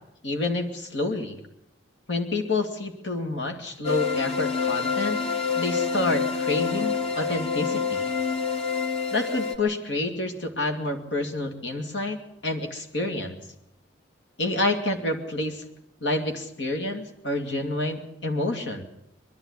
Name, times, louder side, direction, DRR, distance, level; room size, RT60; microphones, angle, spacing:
voice 1, 0.2-1.4 2.1-5.2 5.6-8.1 9.1-13.4 14.4-15.6 16.0-18.9, left 2 dB, 70° left, 4 dB, 2.5 m, -28 dB
sound 1, 3.8-9.6, left 6 dB, 35° left, 1.8 m, -27 dB
23.0 x 11.5 x 9.9 m, 0.80 s
head